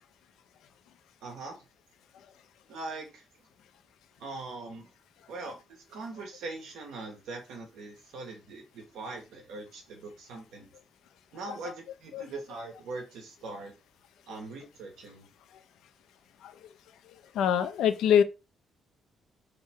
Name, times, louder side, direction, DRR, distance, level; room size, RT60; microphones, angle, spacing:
voice 1, 1.2-1.6 2.7-3.2 4.2-4.9 5.3-10.7 11.3-13.7 14.3-15.3, right 3 dB, 85° right, 1.4 m, -41 dB
voice 2, 17.3-18.2, left 8 dB, 85° left, 0.5 m, -23 dB
3.6 x 3.1 x 3.5 m
cardioid pair, 90°, 0 cm